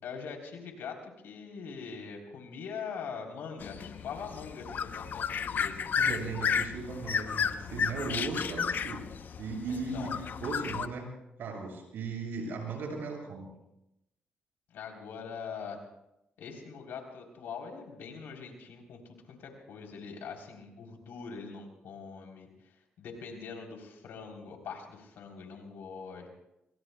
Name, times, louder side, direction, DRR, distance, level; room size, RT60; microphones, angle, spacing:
voice 1, 0.0-5.8 9.7-10.2 14.7-15.8 16.4-26.3, left 5 dB, 80° left, 2 dB, 3.6 m, -43 dB
sound 1, 3.6-10.9, left 7 dB, 60° left, 0.8 m, -33 dB
voice 2, 6.0-9.0 9.4-10.1 10.4-11.1 11.4-13.5, right 3 dB, 75° right, 0 dB, 7.2 m, -37 dB
24.5 x 24.0 x 2.3 m, 0.87 s
supercardioid pair, 60°, 4 cm